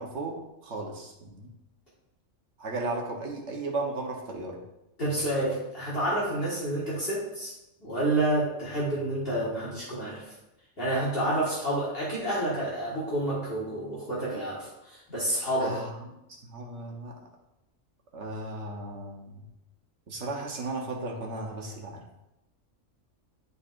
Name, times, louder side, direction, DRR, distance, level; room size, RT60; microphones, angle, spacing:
voice 1, 0.0-1.5 2.6-4.6 15.6-17.2 18.1-19.4 20.1-22.0, right 2 dB, 65° right, 1 dB, 1.3 m, -35 dB
voice 2, 5.0-7.5 7.8-10.2 10.8-15.8, right 1 dB, 50° left, -8 dB, 1.8 m, -29 dB
10.0 x 4.1 x 2.5 m, 0.90 s
omnidirectional pair, 1.3 m